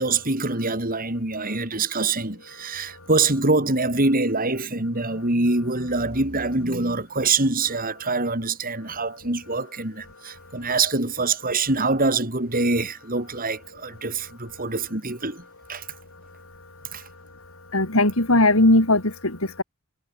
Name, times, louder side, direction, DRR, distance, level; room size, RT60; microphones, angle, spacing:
voice 1, 0.0-15.4 15.7-15.8 16.9-17.0, right 3 dB, 45° right, 5.5 m, -24 dB
voice 2, 17.7-19.6, left 1 dB, 85° left, 5.2 m, -19 dB
head